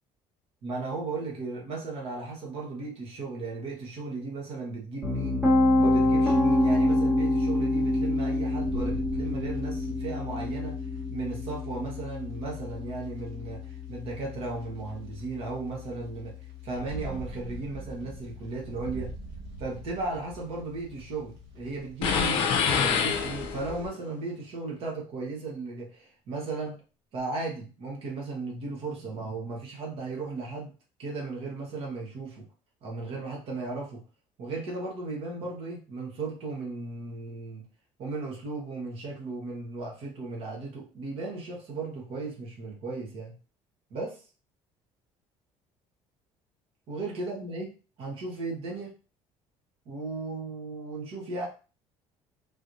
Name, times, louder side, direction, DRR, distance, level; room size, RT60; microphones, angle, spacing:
voice 1, 0.6-5.5 5.8-10.8 11.1-16.3 16.6-19.1 19.6-26.8 27.1-30.7 31.0-32.4 32.8-34.0 34.4-37.7 38.0-43.4 43.9-44.2 46.9-47.7 48.0-48.9 49.8-51.5, right 3 dB, 55° right, -2 dB, 1.4 m, -36 dB
Piano, 5.0-16.9, left 1 dB, 10° right, 1.3 m, -27 dB
sound 1, 6.2-6.3 7.1-7.2 7.8-7.9 8.6-13.7 14.6-14.7 16.5-23.9, right 3 dB, 80° right, 1.7 m, -44 dB
sound 2, 22.0-23.8, left 6 dB, 55° left, 0.6 m, -26 dB
4.0 x 3.2 x 2.6 m, 0.35 s
cardioid pair, 170°, 11 cm